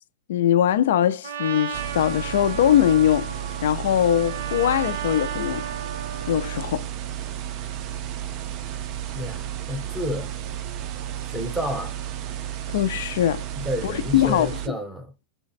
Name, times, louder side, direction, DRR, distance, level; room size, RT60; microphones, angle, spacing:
voice 1, 0.3-5.7 6.3-6.9 12.7-13.4 13.8-14.8, left 10 dB, 65° left, 0.3 m, -22 dB
Trumpet, 1.2-6.7, right 7 dB, 80° right, 0.7 m, -34 dB
sound 1, 1.7-14.7, right 11 dB, 30° right, 0.3 m, -33 dB
voice 2, 9.1-10.3 11.3-12.0 13.6-15.1, equal, ahead, 0.7 m, -30 dB
4.1 x 2.0 x 4.1 m
supercardioid pair, 175°, 0 cm